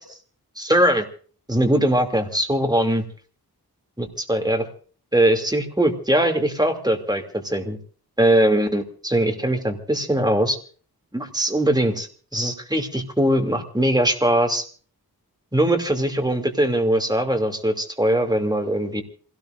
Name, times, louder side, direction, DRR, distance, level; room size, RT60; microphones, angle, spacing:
voice 1, 0.6-1.0 1.5-3.0 4.0-4.7 5.1-7.8 8.2-10.6 11.1-12.1 12.3-14.7 15.5-19.0, right 1 dB, 10° right, 4 dB, 2.7 m, -21 dB
27.5 x 17.5 x 2.6 m, 0.43 s
wide cardioid pair, 75°, 38 cm